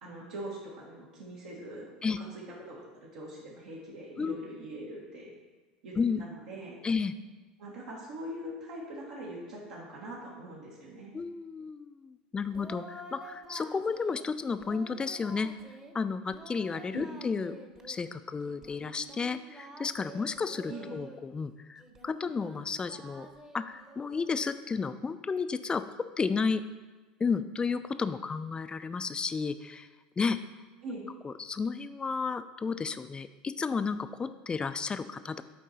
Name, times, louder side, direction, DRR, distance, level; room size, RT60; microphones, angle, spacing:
voice 1, 0.0-5.3 5.8-6.8 7.6-11.1 16.9-17.1 20.7-20.9 30.8-31.1, right 1 dB, 75° right, -6 dB, 1.7 m, -42 dB
voice 2, 6.8-7.1 11.1-15.5 15.9-17.6 17.9-23.3 23.5-25.8 26.2-26.6 27.2-29.9 30.2-30.4 31.2-35.4, left 5 dB, 20° left, 12 dB, 0.4 m, -32 dB
Singing, 12.5-14.3 14.6-15.9 16.3-18.0 18.4-21.3 21.8-24.5, right 1 dB, 15° right, 0.9 m, -49 dB
7.4 x 4.6 x 4.2 m, 1.3 s
hypercardioid pair, 85°, 4 cm